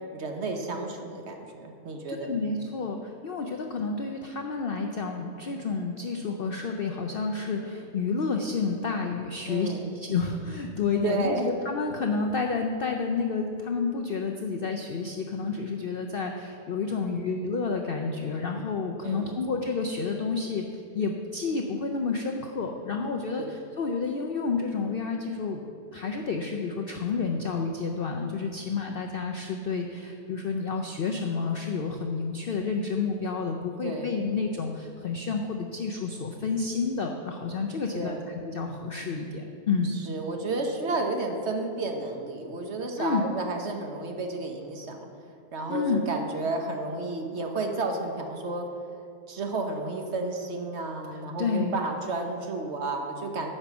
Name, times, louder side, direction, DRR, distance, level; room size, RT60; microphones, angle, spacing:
voice 1, 0.1-2.4 9.5-9.9 11.0-11.4 19.0-19.4 23.4-23.5 33.8-34.1 37.9-38.3 39.9-45.0 45.5-48.7 49.3-53.5, right 3 dB, 50° right, 3 dB, 1.0 m, -32 dB
voice 2, 2.2-25.6 25.9-38.1 38.5-40.0 43.0-43.2 45.7-46.1 51.1-51.8, left 4 dB, 85° left, 2 dB, 0.5 m, -30 dB
9.7 x 5.4 x 7.1 m, 2.5 s
omnidirectional pair, 1.7 m